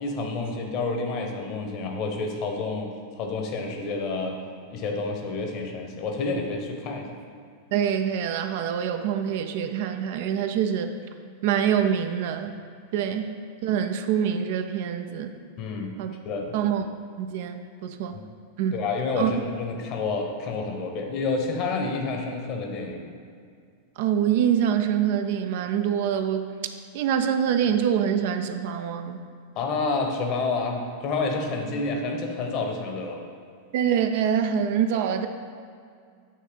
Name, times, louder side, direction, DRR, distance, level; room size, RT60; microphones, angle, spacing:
voice 1, 0.0-4.4 4.7-7.2 15.6-16.0 16.2-16.6 18.1-18.2 18.7-23.0 29.5-33.2, left 3 dB, 40° left, 3 dB, 1.0 m, -29 dB
voice 2, 7.7-10.9 11.4-12.5 12.9-13.3 13.6-15.3 16.0-16.1 16.5-16.9 17.2-18.2 18.6-18.7 19.2-19.3 24.0-26.5 26.9-29.2 33.7-35.3, right 8 dB, 50° right, 8 dB, 0.4 m, -25 dB
8.6 x 3.2 x 5.1 m, 2.2 s
figure-of-eight pair, 90°, 0 cm